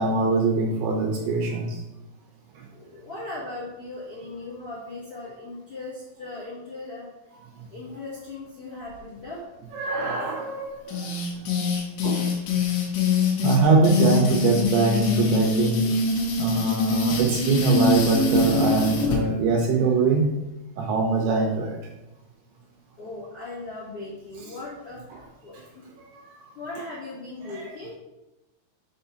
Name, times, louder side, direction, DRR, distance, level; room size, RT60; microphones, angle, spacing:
voice 1, 0.0-1.8 9.7-11.1 11.5-11.6 12.0-12.3 13.4-16.0 16.4-20.3 20.8-21.8 26.1-26.2 27.4-27.7, right 4 dB, 80° right, 1 dB, 2.4 m, -23 dB
voice 2, 2.7-7.1 7.7-9.4 23.0-25.8 26.5-27.9, left 2 dB, 65° left, -7 dB, 1.4 m, -38 dB
sound 1, 10.9-19.2, left 5 dB, 80° left, 3.3 m, -24 dB
7.0 x 2.7 x 5.5 m, 0.99 s
omnidirectional pair, 5.1 m